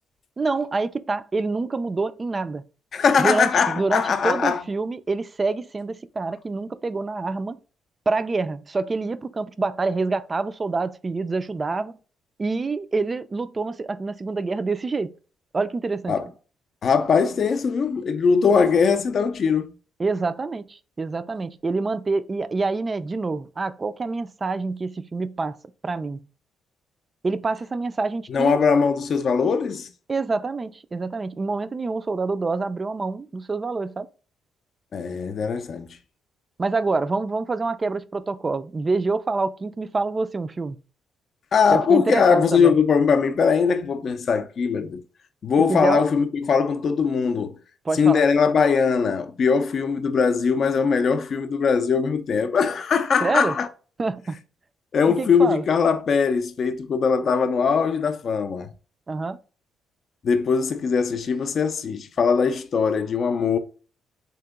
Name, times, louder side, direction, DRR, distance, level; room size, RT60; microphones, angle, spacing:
voice 1, 0.4-2.6 3.2-7.6 8.1-12.0 12.4-15.1 15.5-16.1 20.0-25.6 25.8-26.2 27.2-28.6 30.1-34.1 36.6-40.8 41.7-42.7 45.6-46.0 47.9-48.2 53.2-53.5 54.0-54.4 55.1-55.6 59.1-59.4, right 3 dB, 30° right, 0.3 m, -26 dB
voice 2, 2.9-4.6 16.1-16.3 16.8-19.7 28.3-29.9 34.9-35.9 41.5-45.0 45.4-47.6 47.9-53.7 54.9-58.7 60.2-63.6, left 6 dB, 55° left, 0.4 m, -21 dB
3.6 x 2.9 x 3.5 m
cardioid pair, 90°, 0 cm